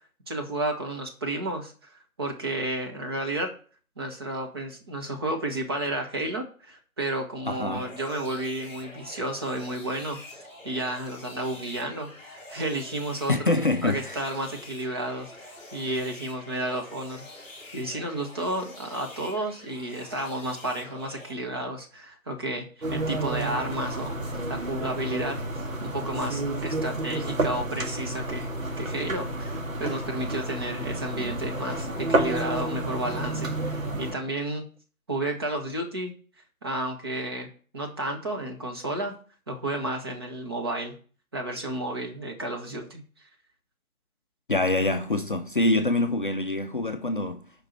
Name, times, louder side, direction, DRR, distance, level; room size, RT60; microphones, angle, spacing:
voice 1, 0.3-3.5 4.0-10.4 10.6-13.5 13.8-17.3 17.7-25.4 25.8-28.5 28.8-34.6 35.1-36.1 36.6-37.5 37.7-39.1 39.5-40.9 41.3-43.0, right 1 dB, 15° right, 0.9 m, -32 dB
voice 2, 7.5-7.9 13.3-14.2 44.5-47.4, left 2 dB, 35° left, 0.6 m, -25 dB
sound 1, 7.7-21.3, left 2 dB, 5° left, 1.5 m, -46 dB
sound 2, 22.8-34.1, right 1 dB, 65° right, 2.2 m, -30 dB
7.2 x 5.3 x 7.3 m
figure-of-eight pair, 150°, 43 cm